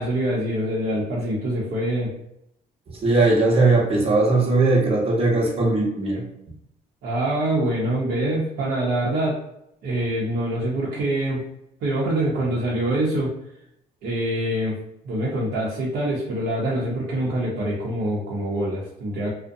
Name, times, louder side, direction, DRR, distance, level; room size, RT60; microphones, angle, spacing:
voice 1, 0.0-2.1 7.0-9.4 9.8-11.4 11.8-13.3 14.0-14.8 15.0-19.3, right 1 dB, 70° right, -6 dB, 0.7 m, -25 dB
voice 2, 2.9-6.3, right 3 dB, 35° right, -2 dB, 0.8 m, -19 dB
2.5 x 2.1 x 2.6 m, 0.79 s
cardioid pair, 110°, 17 cm